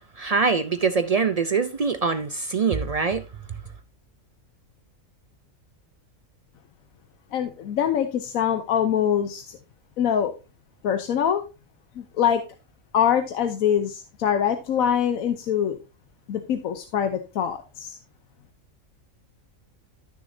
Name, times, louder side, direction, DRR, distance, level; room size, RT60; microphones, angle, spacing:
voice 1, 0.2-3.2, right 5 dB, 65° right, 0.3 m, -23 dB
voice 2, 7.3-9.6 10.0-10.3 10.8-11.4 12.0-12.4 12.9-15.8 16.3-18.0, left 9 dB, 85° left, 1.2 m, -24 dB
13.5 x 6.5 x 2.6 m
omnidirectional pair, 1.4 m